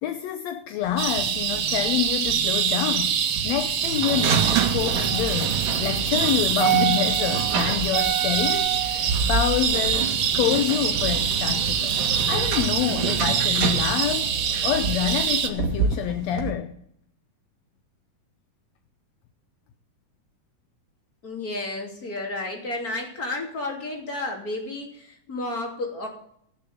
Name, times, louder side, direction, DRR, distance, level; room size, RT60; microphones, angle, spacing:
voice 1, 0.0-3.2 3.4-12.0 12.3-14.3 14.6-16.7, left 11 dB, 75° left, 1.7 m, -27 dB
sound 1, 0.8-16.5, right 7 dB, 85° right, 3.5 m, -28 dB
sound 2, 1.0-15.5, right 8 dB, 60° right, 1.4 m, -25 dB
voice 2, 21.2-26.1, left 2 dB, 30° left, 3.2 m, -32 dB
17.0 x 6.8 x 8.6 m
omnidirectional pair, 3.7 m